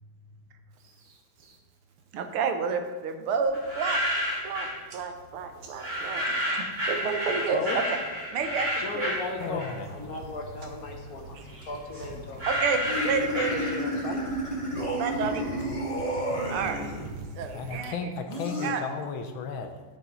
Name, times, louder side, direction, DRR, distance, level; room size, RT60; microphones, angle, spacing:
sound 1, 0.8-1.6 2.0-2.4 2.7-3.1 3.6-3.7 3.9-4.6 4.9-7.5 7.7-8.2 8.8-17.8, right 3 dB, 70° right, 1.7 m, -45 dB
voice 1, 2.1-4.0 4.4-4.7 4.9-6.2 6.9-8.0 8.3-9.1 11.3-11.4 12.5-13.6 15.0-15.5 16.5-16.8 17.3-17.9 18.6-18.8, right 5 dB, 90° right, 7 dB, 1.8 m, -30 dB
sound 2, 3.5-4.8 5.8-10.0 10.4-14.1, equal, 20° right, 2.8 m, -31 dB
voice 2, 8.8-12.5 13.5-14.2, left 3 dB, 55° left, 2 dB, 1.1 m, -36 dB
voice 3, 9.4-9.9 17.5-19.8, left 5 dB, 75° left, 6 dB, 1.6 m, -34 dB
sound 3, 12.9-17.1 18.3-18.7, equal, 20° left, 1.1 m, -31 dB
12.5 x 6.1 x 4.0 m, 1.3 s
omnidirectional pair, 2.3 m